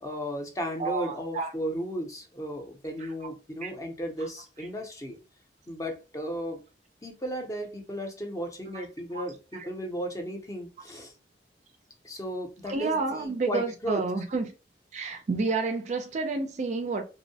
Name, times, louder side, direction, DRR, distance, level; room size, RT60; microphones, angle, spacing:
voice 1, 0.0-5.2 5.7-6.6 7.0-11.1 12.0-14.0, equal, 20° left, 0.6 m, -35 dB
voice 2, 0.8-1.5 3.0-3.1 3.6-3.7 9.1-9.2 9.5-9.7 12.7-14.5 14.9-17.0, right 3 dB, 40° right, 0.3 m, -30 dB
2.5 x 2.0 x 2.6 m
head